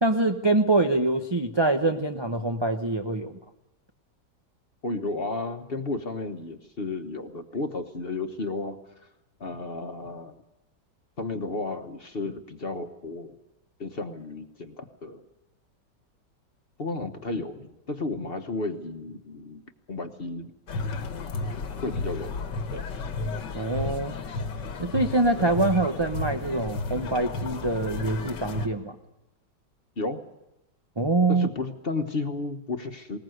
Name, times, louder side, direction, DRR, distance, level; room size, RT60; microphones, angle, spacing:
voice 1, 0.0-3.4 23.5-24.1 24.8-29.0 31.0-31.5, right 2 dB, 30° right, 4 dB, 0.5 m, -25 dB
voice 2, 4.8-8.8 9.4-10.4 11.2-13.4 13.8-15.2 16.8-19.6 19.9-20.5 21.5-22.4 22.7-22.9 30.0-30.2 31.3-33.2, left 3 dB, 35° left, 6 dB, 1.2 m, -33 dB
sound 1, 20.7-28.7, left 3 dB, 75° left, 1.9 m, -33 dB
20.5 x 19.5 x 7.9 m, 0.89 s
omnidirectional pair, 2.0 m